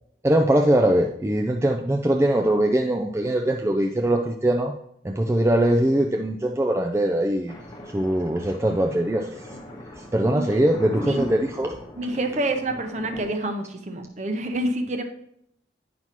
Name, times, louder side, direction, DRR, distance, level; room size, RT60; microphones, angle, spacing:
voice 1, 0.2-4.7 5.0-7.6 7.9-9.5 10.1-11.7, right 1 dB, 15° right, 3 dB, 0.3 m, -22 dB
Thunder, 7.5-13.2, equal, 25° left, 1.0 m, -38 dB
voice 2, 12.0-15.0, right 1 dB, 40° right, 6 dB, 0.7 m, -27 dB
9.3 x 5.8 x 3.0 m, 0.73 s
head